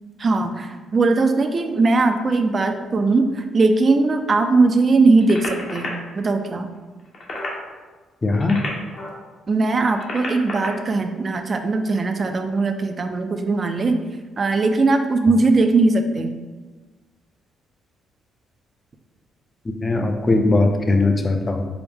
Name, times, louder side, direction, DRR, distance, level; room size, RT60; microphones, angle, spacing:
voice 1, 0.2-6.7 9.5-14.0 14.4-16.4, right 3 dB, 40° right, 7 dB, 0.4 m, -19 dB
sound 1, 5.2-5.9 7.0-7.6 8.2-9.2 9.8-10.7 11.9-12.0, left 2 dB, 55° left, 0.9 m, -32 dB
voice 2, 8.2-8.6 19.8-21.7, left 2 dB, 25° left, 5 dB, 0.4 m, -19 dB
4.7 x 2.0 x 3.4 m, 1.3 s
cardioid pair, 90°, 0 cm